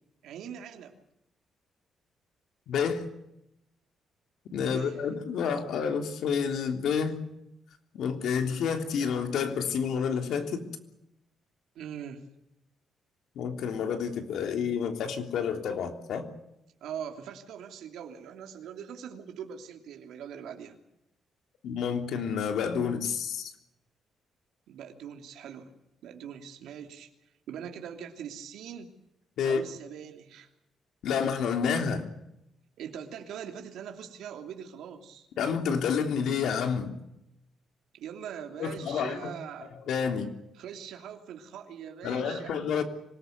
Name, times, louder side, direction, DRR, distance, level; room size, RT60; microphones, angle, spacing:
voice 1, 0.2-0.9 4.6-5.0 11.7-12.3 16.8-20.8 24.7-25.7 26.0-27.1 27.5-29.0 29.4-30.5 32.8-35.3 37.9-39.7 40.5-42.5, right 8 dB, 85° right, 4 dB, 3.1 m, -42 dB
voice 2, 2.7-3.0 4.5-7.2 7.9-10.6 13.4-16.2 21.6-23.5 29.4-29.6 31.0-32.1 35.4-37.0 38.6-39.3 39.9-40.3 42.0-42.8, left 6 dB, 70° left, 5 dB, 3.4 m, -29 dB
26.0 x 19.0 x 8.2 m, 0.84 s
cardioid pair, 160°, 0 cm